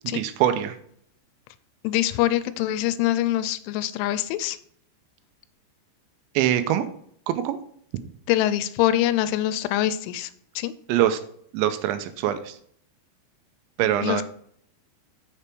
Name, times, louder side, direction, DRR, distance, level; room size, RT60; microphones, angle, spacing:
voice 1, 0.1-0.8 6.3-6.9 7.3-7.6 10.9-11.2 11.5-12.6 13.8-14.2, right 11 dB, 85° right, 10 dB, 2.8 m, -23 dB
voice 2, 1.8-4.6 8.3-10.7 14.0-14.2, left 13 dB, 90° left, 13 dB, 3.0 m, -24 dB
6.8 x 6.8 x 4.5 m, 0.64 s
omnidirectional pair, 5.3 m